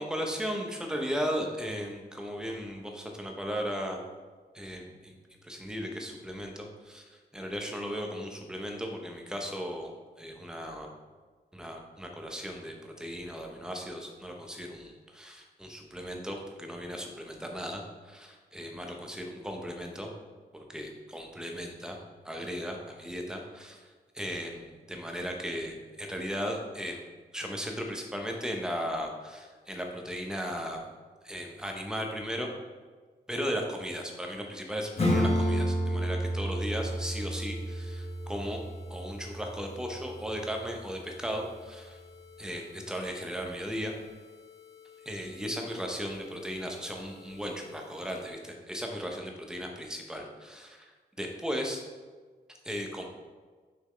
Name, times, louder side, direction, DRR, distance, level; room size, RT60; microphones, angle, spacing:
voice 1, 0.0-4.0 4.5-5.2 5.4-9.9 10.2-10.9 11.5-20.1 20.5-22.0 22.2-27.0 27.3-30.8 31.2-32.5 33.3-38.6 38.9-42.0 42.4-43.9 45.1-50.9 51.2-51.8 52.6-53.0, equal, 5° right, 2 dB, 0.8 m, -36 dB
Acoustic guitar / Strum, 35.0-40.2, equal, 35° left, 1.2 m, -30 dB
sound 1, 36.5-48.3, left 8 dB, 75° right, 1.2 m, -54 dB
6.2 x 5.8 x 3.3 m, 1.4 s
wide cardioid pair, 155°, 17 cm